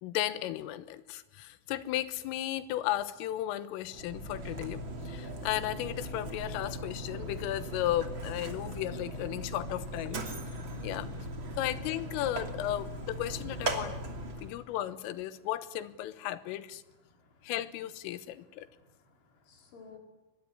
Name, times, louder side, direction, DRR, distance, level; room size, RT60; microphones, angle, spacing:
voice 1, 0.0-10.3 10.8-11.1 11.6-14.0 14.4-16.8 17.4-18.7, left 13 dB, 90° left, 14 dB, 3.8 m, -35 dB
Mechanisms, 3.8-14.6, right 1 dB, 35° right, 2.5 m, -39 dB
voice 2, 10.7-11.2 14.4-14.5 17.1-17.5 18.9-20.0, left 5 dB, 70° left, 2 dB, 7.2 m, -56 dB
23.5 x 22.0 x 9.8 m, 1.0 s
omnidirectional pair, 5.7 m